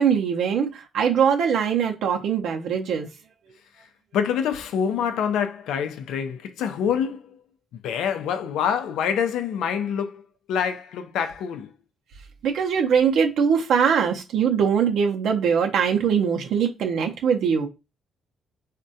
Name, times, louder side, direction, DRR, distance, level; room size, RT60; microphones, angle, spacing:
voice 1, 0.0-3.1 12.4-17.7, right 7 dB, 75° right, 0.5 m, -22 dB
voice 2, 4.1-7.4 7.7-10.2 10.5-11.7, left 8 dB, 85° left, 0.4 m, -26 dB
3.5 x 2.1 x 2.6 m
cardioid pair, 90°, 0 cm